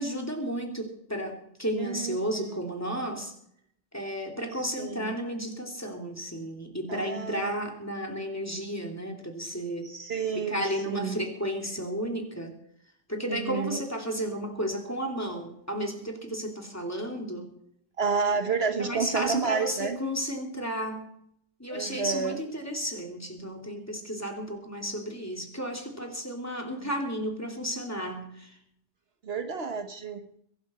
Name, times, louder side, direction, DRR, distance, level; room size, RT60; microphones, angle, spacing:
voice 1, 0.0-3.3 3.9-9.9 10.3-12.5 13.1-17.5 18.8-21.1 21.6-28.6, equal, 15° left, 1 dB, 2.6 m, -33 dB
voice 2, 1.8-2.6 4.8-5.1 6.9-7.6 9.8-11.2 13.3-13.8 18.0-20.0 21.7-22.4 29.2-30.2, right 5 dB, 65° right, 6 dB, 1.5 m, -30 dB
23.0 x 11.0 x 4.3 m, 0.71 s
omnidirectional pair, 1.2 m